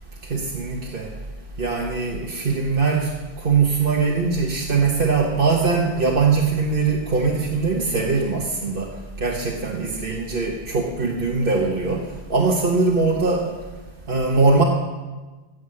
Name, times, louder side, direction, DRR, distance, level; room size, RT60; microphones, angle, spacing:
voice 1, 0.3-1.1 1.6-3.1 3.4-8.9 9.2-12.0 12.3-13.4 14.1-14.6, right 4 dB, 55° right, -1 dB, 1.6 m, -21 dB
15.5 x 7.9 x 7.7 m, 1.3 s
omnidirectional pair, 1.1 m